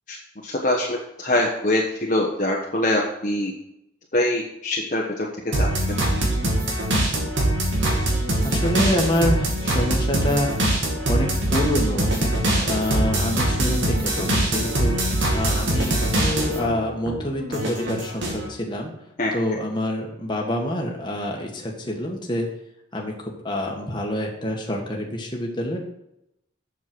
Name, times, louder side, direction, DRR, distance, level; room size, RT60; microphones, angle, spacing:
voice 1, 0.4-3.5 4.1-5.3 5.5-5.7 19.2-19.3, left 1 dB, 40° left, -2 dB, 1.1 m, -23 dB
sound 1, 5.5-16.7 17.1-18.4, right 1 dB, 70° right, 2.3 m, -23 dB
voice 2, 8.4-10.5 11.1-12.2 12.6-15.0 15.3-18.9 19.3-22.5 22.9-25.8, left 1 dB, 20° left, 0 dB, 1.6 m, -26 dB
7.5 x 6.8 x 6.1 m, 0.81 s
head